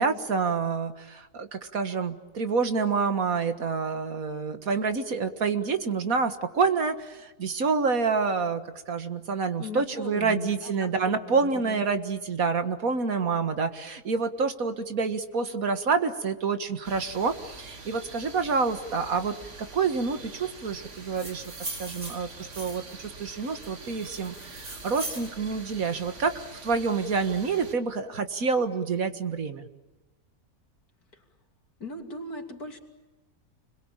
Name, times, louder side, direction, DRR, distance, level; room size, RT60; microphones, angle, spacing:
voice 1, 0.0-21.4 21.8-29.7, right 5 dB, 70° right, 8 dB, 2.0 m, -28 dB
voice 2, 9.6-11.8 31.1-31.3 31.8-32.8, left 3 dB, 85° left, 3 dB, 3.5 m, -39 dB
sound 1, 16.8-27.7, right 3 dB, 50° right, 2.5 m, -45 dB
sound 2, 20.9-23.0 23.6-25.3, right 2 dB, 85° right, 5.4 m, -40 dB
29.5 x 22.0 x 8.9 m, 1.1 s
omnidirectional pair, 1.6 m